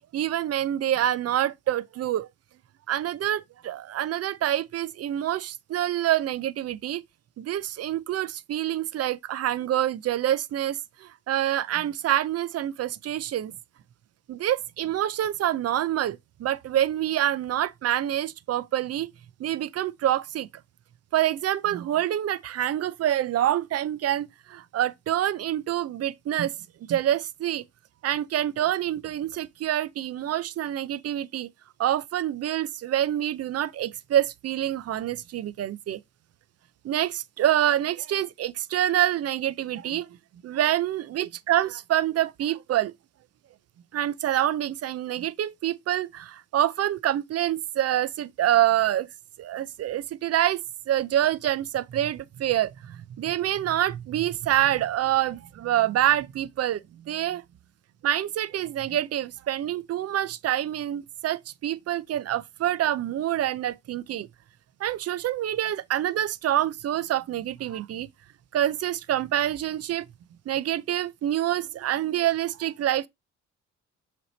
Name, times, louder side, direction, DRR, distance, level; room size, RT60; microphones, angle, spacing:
voice 1, 0.1-2.3 2.9-7.0 7.4-13.5 14.3-19.1 19.4-20.5 21.1-26.5 26.9-27.6 28.0-31.5 31.8-36.0 36.8-40.1 40.4-42.9 43.9-49.1 49.4-50.6 50.9-57.4 58.0-64.3 64.8-68.1 68.5-70.0 70.5-73.1, right 12 dB, 55° right, 0.6 m, -26 dB
6.7 x 3.5 x 4.0 m
cardioid pair, 90°, 30 cm